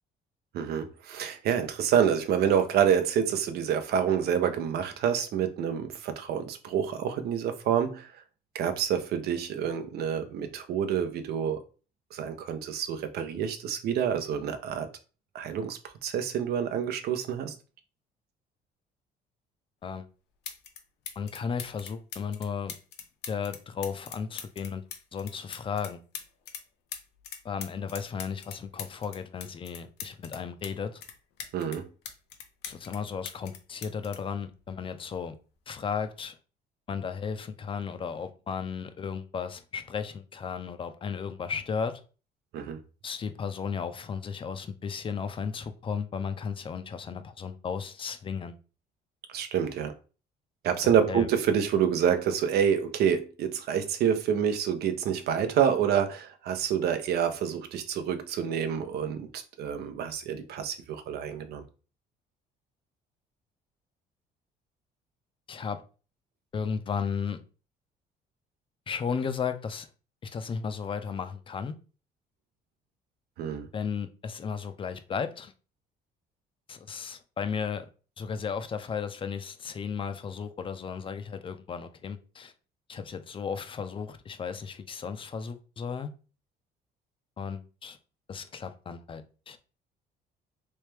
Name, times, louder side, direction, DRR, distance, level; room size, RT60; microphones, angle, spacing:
voice 1, 0.5-8.1 8.5-11.6 12.1-14.9 15.3-17.5 31.5-31.9 42.5-42.8 49.3-49.9 50.6-61.6 73.4-73.7, right 8 dB, 70° right, 0.7 m, -27 dB
sound 1, 20.4-20.8 21.1-26.6 26.9-30.7 31.0-33.0 33.2-35.1 36.0-36.2, left 8 dB, 80° left, 0.7 m, -42 dB
voice 2, 21.2-22.7 23.3-24.9 25.1-26.0 27.4-31.0 32.6-35.3 35.7-36.4 36.9-42.0 43.0-48.6 51.1-51.3 65.5-65.8 66.5-67.4 68.9-69.9 70.2-71.8 73.7-75.5 76.7-77.9 78.2-82.5 82.9-86.1 87.4-88.0 88.3-89.6, left 6 dB, 30° left, 0.5 m, -34 dB
3.3 x 3.2 x 3.3 m
cardioid pair, 110°, 17 cm